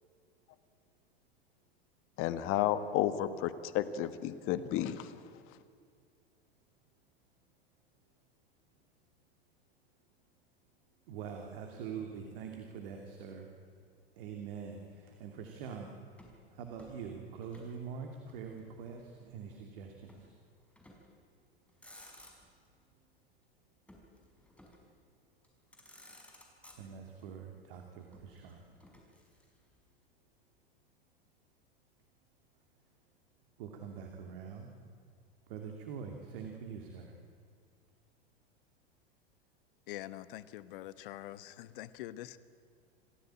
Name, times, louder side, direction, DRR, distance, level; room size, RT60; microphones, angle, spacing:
voice 1, 2.2-5.2, left 12 dB, 45° left, 12 dB, 1.6 m, -32 dB
voice 2, 11.1-13.5 14.2-15.9 16.5-20.3 26.7-28.6 33.6-34.7 35.5-37.1, right 6 dB, 60° right, 4 dB, 2.8 m, -44 dB
Motor vehicle (road), 16.2-17.8 18.0-19.1 20.1-20.3 20.8-21.2 21.6-22.7 23.9-24.9 25.4-25.5 25.7-27.2 28.1-29.8, left 1 dB, 5° left, 5.2 m, -58 dB
voice 3, 39.9-42.4, left 14 dB, 60° left, 15 dB, 1.2 m, -45 dB
27.5 x 15.5 x 8.9 m, 2.3 s
hypercardioid pair, 95°, 30 cm